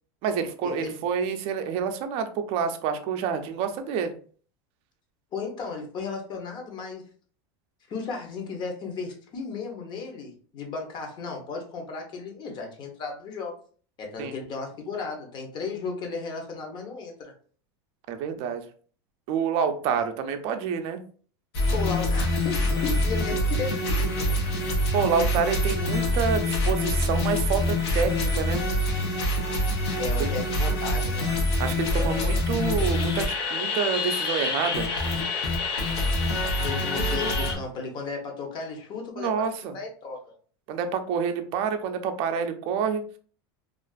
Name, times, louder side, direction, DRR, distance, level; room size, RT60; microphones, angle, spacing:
voice 1, 0.2-4.1 14.2-14.3 18.1-18.6 19.3-21.0 24.9-28.6 30.2-30.3 31.6-34.9 39.2-39.8 40.7-43.0, right 6 dB, 50° right, 8 dB, 0.4 m, -28 dB
voice 2, 5.3-7.0 7.9-13.6 14.0-17.3 21.7-24.3 30.0-31.4 36.6-39.5 39.7-40.2, left 4 dB, 35° left, 2 dB, 0.7 m, -35 dB
sound 1, 21.5-37.6, left 1 dB, 85° left, 0.8 m, -25 dB
2.4 x 2.4 x 2.3 m, 0.44 s
supercardioid pair, 135°, 13 cm